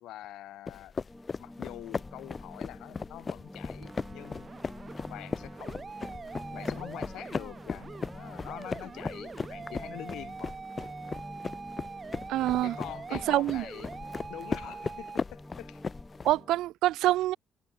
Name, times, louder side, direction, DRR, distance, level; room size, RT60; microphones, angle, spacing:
voice 1, 0.0-1.0 1.4-4.5 5.1-6.3 6.5-10.6 12.6-13.9 14.3-15.8, left 14 dB, 85° left, 1.1 m, -45 dB
sound 1, 0.7-16.3, left 5 dB, 35° left, 1.7 m, -38 dB
sound 2, 1.1-16.6, left 1 dB, 10° left, 2.7 m, -48 dB
sound 3, 3.8-15.2, right 5 dB, 35° right, 0.9 m, -44 dB
voice 2, 12.3-12.8 13.3-13.6 16.2-17.4, right 15 dB, 90° right, 0.4 m, -26 dB
cardioid pair, 90°, 0 cm